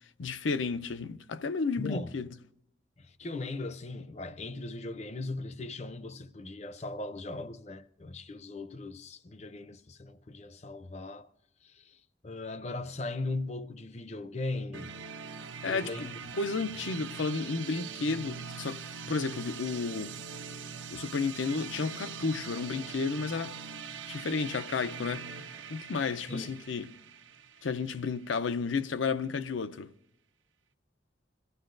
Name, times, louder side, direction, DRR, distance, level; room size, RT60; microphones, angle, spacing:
voice 1, 0.2-2.3 15.6-16.1 16.4-18.8 19.1-20.2 20.9-23.5 24.1-25.3 25.7-26.9 27.6-29.9, left 4 dB, 90° left, 0.6 m, -32 dB
voice 2, 1.8-2.1 3.0-11.3 11.6-12.0 12.2-15.0 15.7-16.4 26.3-26.5, left 2 dB, 35° left, 0.5 m, -38 dB
sound 1, 14.7-28.5, right 6 dB, 90° right, 0.8 m, -43 dB
26.5 x 15.0 x 2.6 m
head